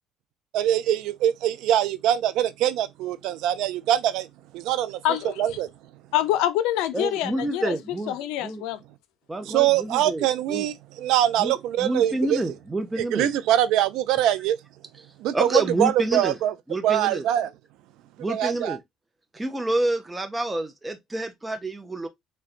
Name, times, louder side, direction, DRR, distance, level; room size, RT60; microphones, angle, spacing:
voice 1, 0.5-4.3 4.5-5.0 5.4-5.7 9.4-12.4 13.0-14.6 15.2-16.5 16.8-17.5 18.3-18.8, right 12 dB, 75° right, 0.4 m, -23 dB
voice 2, 5.0-5.6 6.1-7.8 8.1-8.8, left 13 dB, 85° left, 0.5 m, -26 dB
voice 3, 6.9-8.1 8.4-8.6 9.3-10.7 11.4-11.5 11.8-13.3 15.3-16.4 16.7-17.2 18.2-18.8 19.3-22.1, right 1 dB, 15° right, 0.5 m, -28 dB
3.8 x 2.2 x 2.4 m
cardioid pair, 110°, 0 cm